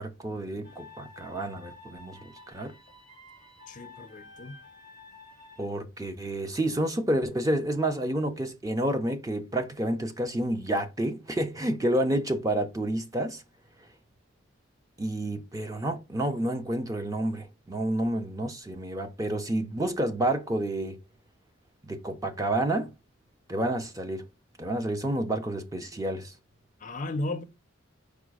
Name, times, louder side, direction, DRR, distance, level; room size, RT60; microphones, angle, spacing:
voice 1, 0.0-2.7 5.6-13.4 15.0-21.0 21.8-22.9 23.5-24.3 24.6-26.3, right 1 dB, 15° right, 0.5 m, -29 dB
sound 1, 0.6-5.7, left 3 dB, 35° right, 3.2 m, -50 dB
voice 2, 3.7-4.6 26.8-27.4, left 2 dB, 40° left, 0.5 m, -34 dB
4.9 x 2.3 x 4.7 m
head